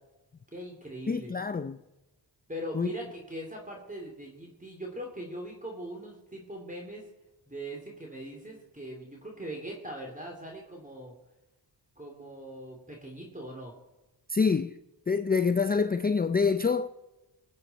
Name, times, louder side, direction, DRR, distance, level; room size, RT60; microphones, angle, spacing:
voice 1, 0.5-1.4 2.5-7.1 7.5-11.1 12.0-13.7, right 1 dB, 15° right, 2.8 m, -41 dB
voice 2, 1.1-1.8 2.7-2.9 14.3-14.8 15.1-16.9, left 5 dB, 20° left, 0.5 m, -26 dB
21.5 x 8.4 x 4.1 m
cardioid pair, 75°, 45 cm